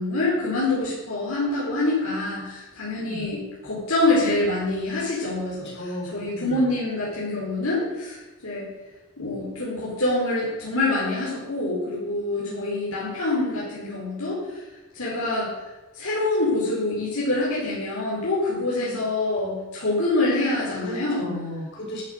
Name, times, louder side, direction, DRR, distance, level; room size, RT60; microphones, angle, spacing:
voice 1, 0.0-5.7 6.1-8.7 9.2-14.6 14.9-15.5 15.9-21.3, left 2 dB, 70° left, -6 dB, 4.9 m, -25 dB
voice 2, 2.9-3.2 5.4-6.7 12.3-12.7 18.8-19.0 20.7-22.0, equal, 50° left, -3 dB, 6.4 m, -36 dB
13.0 x 11.5 x 6.8 m, 1.1 s
head